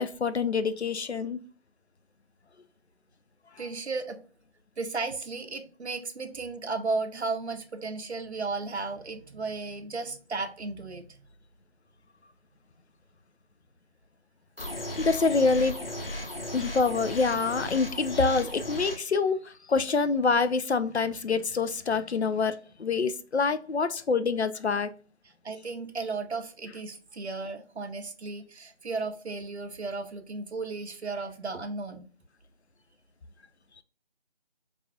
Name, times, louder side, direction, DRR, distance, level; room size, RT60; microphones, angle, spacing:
voice 1, 0.0-1.4 15.0-15.8 16.5-24.9, left 4 dB, 70° left, 0.5 m, -26 dB
voice 2, 3.6-4.2 4.8-11.3 25.4-32.1, right 3 dB, 70° right, 0.6 m, -34 dB
sound 1, 14.6-19.0, left 1 dB, 55° left, 1.0 m, -36 dB
4.7 x 2.5 x 2.3 m
figure-of-eight pair, 170°, 34 cm